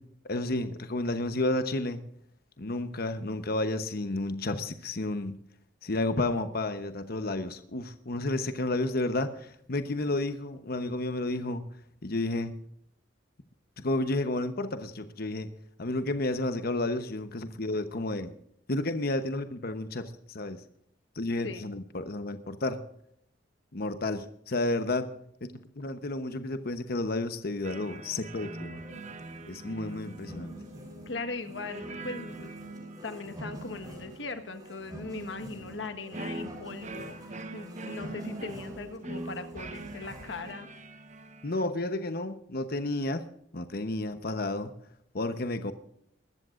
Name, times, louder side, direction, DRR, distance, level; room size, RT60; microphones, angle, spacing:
voice 1, 0.2-2.0 2.6-5.4 5.8-11.6 12.0-12.5 13.8-15.5 15.8-18.3 18.7-20.6 21.2-22.8 23.7-25.1 25.4-28.8 29.5-30.5 41.4-43.3 43.5-44.7 45.1-45.7, left 2 dB, 55° left, 9 dB, 1.0 m, -31 dB
sound 1, 27.6-41.6, right 2 dB, 40° right, 1.0 m, -44 dB
sound 2, 28.8-40.6, right 1 dB, 20° right, 4.2 m, -46 dB
voice 2, 31.0-40.7, left 3 dB, 70° left, 8 dB, 1.5 m, -40 dB
21.0 x 14.0 x 2.6 m, 0.71 s
head